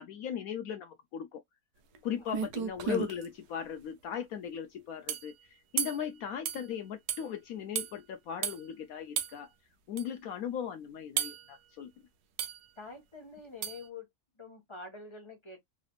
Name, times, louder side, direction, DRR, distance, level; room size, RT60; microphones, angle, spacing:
voice 1, 0.0-1.4 2.0-9.5 9.9-11.9, left 8 dB, 70° left, 1.0 m, -38 dB
sound 1, 1.9-2.0 2.3-3.3 5.1-5.3 5.8-6.1 6.5-6.6 7.1-7.2 7.8-7.9 8.4-8.6 9.2-9.4 10.0-10.1 11.2-11.5 12.4-12.6 13.6-13.8, right 8 dB, 85° right, 1.3 m, -33 dB
voice 2, 12.8-14.1 14.4-15.6, left 3 dB, 20° left, 1.0 m, -46 dB
4.1 x 3.3 x 2.3 m
omnidirectional pair, 1.7 m